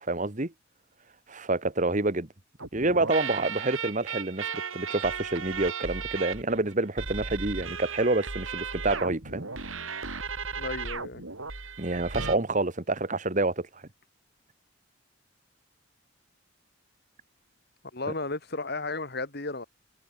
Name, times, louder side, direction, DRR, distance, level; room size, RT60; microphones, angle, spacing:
voice 1, 0.1-0.5 1.3-2.3 2.7-4.4 4.7-9.4 11.8-13.8, right 2 dB, 35° right, 1.5 m, -27 dB
sound 1, 2.6-12.4, right 5 dB, 80° right, 4.7 m, -35 dB
voice 2, 10.6-11.2 17.9-19.6, left 3 dB, 50° left, 2.4 m, -34 dB
head